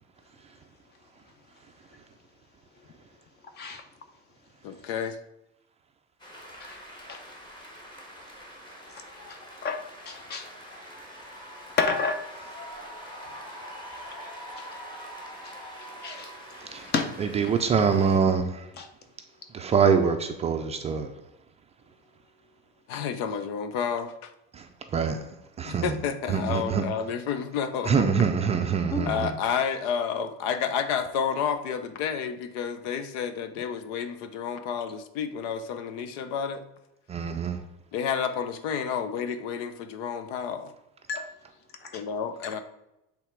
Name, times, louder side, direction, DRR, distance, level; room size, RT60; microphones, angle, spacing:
voice 1, 4.6-5.2 22.9-24.3 25.7-27.9 29.1-36.6 37.9-40.7 41.9-42.6, left 7 dB, 75° left, 0.8 m, -30 dB
sound 1, 6.2-18.2, equal, 15° left, 1.4 m, -44 dB
voice 2, 9.3-9.8 10.1-10.5 11.8-12.2 14.6-14.7 15.4-15.5 15.8-16.3 16.8-17.1 18.8-18.9 28.9-29.1 41.1-41.2 41.8-42.0, left 4 dB, 35° left, 0.9 m, -30 dB
voice 3, 17.2-18.7 19.5-21.1 24.5-24.7 24.9-25.2 25.6-26.0 26.3-26.8 27.8-29.4 37.1-37.6, right 6 dB, 20° right, 0.4 m, -24 dB
7.9 x 3.5 x 4.6 m
cardioid pair, 150°, 30 cm